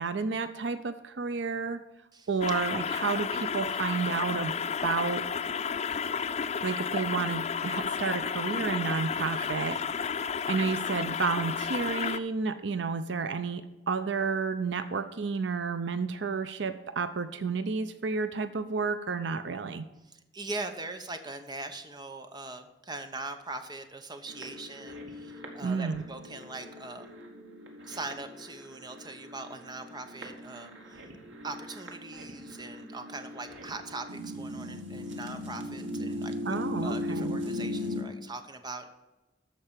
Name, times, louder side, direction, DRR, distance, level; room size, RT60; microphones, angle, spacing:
voice 1, 0.0-1.8 2.3-4.6 4.8-5.2 6.6-9.8 10.5-19.9 25.6-26.0 36.5-37.4, right 5 dB, 65° right, 11 dB, 0.6 m, -31 dB
sound 1, 2.4-12.2, left 6 dB, 35° left, 0.4 m, -32 dB
voice 2, 20.0-27.1 27.8-31.1 31.4-38.9, right 2 dB, 20° right, 7 dB, 0.9 m, -41 dB
sound 2, 24.3-38.0, left 1 dB, 85° right, 1.9 m, -39 dB
13.5 x 4.6 x 7.3 m, 1.0 s
head